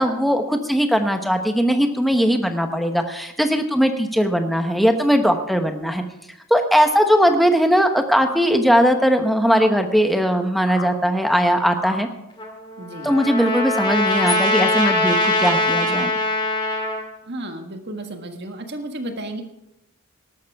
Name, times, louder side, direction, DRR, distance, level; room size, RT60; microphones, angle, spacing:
voice 1, 0.0-6.0 6.5-12.1 13.0-16.1, equal, ahead, 5 dB, 1.0 m, -19 dB
sound 1, 8.2-8.4 9.5-9.7 10.2-10.3 10.7-10.9 11.2-11.3 11.8-12.0 13.1-13.2 13.7-13.8, left 5 dB, 80° left, 1.8 m, -34 dB
Trumpet, 12.4-17.0, left 1 dB, 25° left, 2.2 m, -22 dB
voice 2, 12.8-13.2 17.2-19.4, right 1 dB, 50° right, 5 dB, 1.6 m, -33 dB
18.5 x 12.5 x 3.5 m, 0.87 s
head